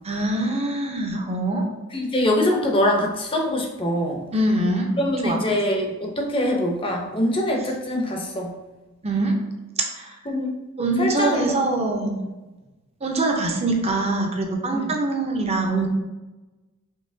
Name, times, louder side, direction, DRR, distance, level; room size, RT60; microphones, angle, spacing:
voice 1, 0.0-1.6 4.3-4.9 5.2-5.4 9.0-9.4 9.9-10.2 10.8-12.2 13.0-15.9, right 2 dB, 30° right, 1 dB, 0.7 m, -23 dB
voice 2, 1.9-4.2 5.0-8.5 10.3-10.6 11.0-11.6 14.7-14.9, left 1 dB, 25° left, 1 dB, 0.7 m, -23 dB
5.4 x 2.9 x 2.7 m, 1.1 s
head